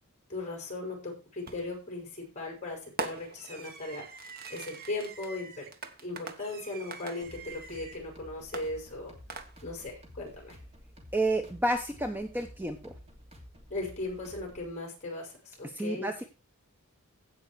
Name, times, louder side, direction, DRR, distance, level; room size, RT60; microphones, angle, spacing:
voice 1, 0.3-4.0 4.5-5.7 6.0-9.1 9.6-10.6 13.7-15.3 15.6-16.1, left 2 dB, 30° left, 0 dB, 6.0 m, -38 dB
Fireworks, 1.5-1.9 3.0-8.0 8.5-9.9, right 4 dB, 45° right, 1.2 m, -42 dB
sound 1, 7.2-14.7, equal, 30° right, 2.9 m, -52 dB
voice 2, 11.1-12.9 15.6-16.2, right 1 dB, 10° right, 5 dB, 0.9 m, -30 dB
16.0 x 5.5 x 4.8 m, 0.31 s
head